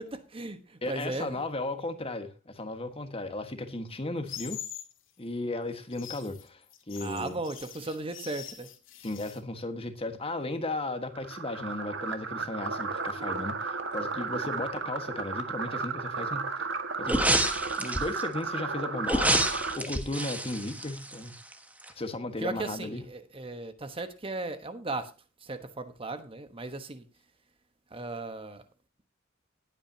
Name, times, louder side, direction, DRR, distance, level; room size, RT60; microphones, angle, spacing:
voice 1, 0.0-1.4 7.0-8.7 22.4-25.1 25.4-27.1 27.9-28.6, right 2 dB, 30° right, 1.2 m, -36 dB
voice 2, 0.8-4.6 5.2-7.4 9.0-16.7 17.0-17.3 17.8-21.3 22.0-23.0, left 2 dB, 30° left, 1.5 m, -35 dB
sound 1, 4.3-4.9 5.8-9.4, left 11 dB, 80° left, 2.2 m, -43 dB
sound 2, 11.1-19.8, right 4 dB, 65° right, 1.8 m, -34 dB
sound 3, 17.0-18.2 19.0-21.5 21.8-21.9, right 1 dB, 10° right, 1.4 m, -28 dB
19.0 x 9.0 x 2.8 m
head